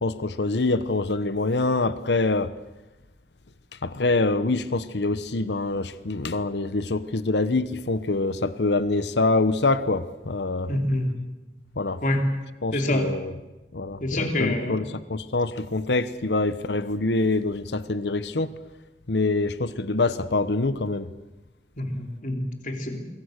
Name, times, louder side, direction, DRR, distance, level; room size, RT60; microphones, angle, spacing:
voice 1, 0.0-2.5 3.7-10.7 11.8-12.0 12.6-13.3 13.7-18.5 19.1-21.1, left 2 dB, 75° left, 14 dB, 1.0 m, -25 dB
voice 2, 10.7-11.1 12.0-12.2 12.7-13.1 14.0-14.8 21.8-23.0, left 1 dB, 45° left, 3 dB, 3.5 m, -26 dB
26.0 x 23.0 x 6.6 m, 1.1 s
head